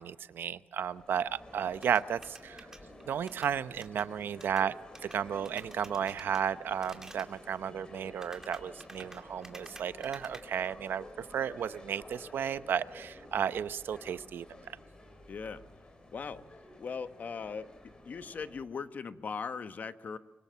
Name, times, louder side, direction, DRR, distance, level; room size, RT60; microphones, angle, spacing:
voice 1, 0.0-2.7 3.1-4.7 5.0-14.4, right 8 dB, 85° right, 14 dB, 0.8 m, -33 dB
sound 1, 0.8-18.6, left 1 dB, 25° left, 3.7 m, -52 dB
sound 2, 1.8-4.1 4.4-4.7 4.9-5.2 5.4-6.4 6.8-7.3 8.1-10.4, right 2 dB, 15° right, 2.4 m, -50 dB
voice 2, 15.3-15.6 16.1-16.4 16.8-17.7 18.0-20.2, left 5 dB, 50° left, 11 dB, 1.2 m, -39 dB
25.0 x 23.5 x 6.9 m, 1.2 s
wide cardioid pair, 130°, 4 cm